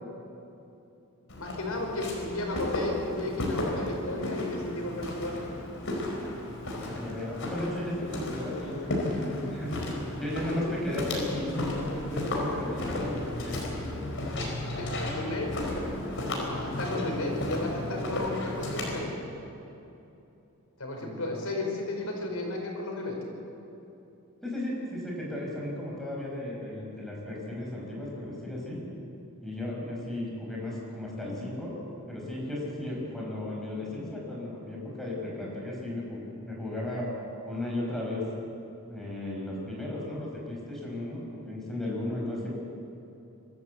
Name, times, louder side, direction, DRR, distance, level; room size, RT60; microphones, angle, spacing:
voice 1, 1.3-5.3 14.7-15.5 16.2-19.1 20.8-23.2, left 2 dB, 90° left, 0 dB, 5.1 m, -33 dB
Walk footsteps, 1.3-19.0, left 1 dB, 60° left, 4.7 m, -34 dB
voice 2, 6.8-9.9 10.2-13.6 20.9-21.3 24.4-28.8 29.4-31.8 32.1-37.1 37.4-38.2 38.9-42.5, left 1 dB, ahead, -4 dB, 5.6 m, -35 dB
24.0 x 13.5 x 8.3 m, 2.9 s
head